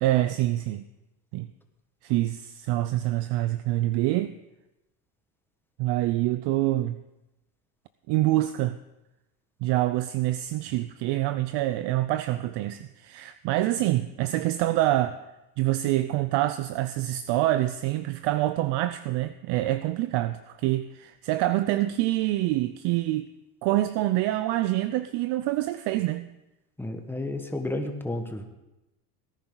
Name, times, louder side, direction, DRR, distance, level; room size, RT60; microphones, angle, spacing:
voice 1, 0.0-0.8 1.3-1.5 2.0-4.3 5.8-7.0 8.1-8.8 9.6-15.2 15.6-23.3 23.6-26.3, right 15 dB, 60° right, 0.6 m, -26 dB
voice 2, 26.8-28.4, left 1 dB, 5° left, 1.5 m, -31 dB
18.5 x 10.5 x 4.0 m
supercardioid pair, 105°, 47 cm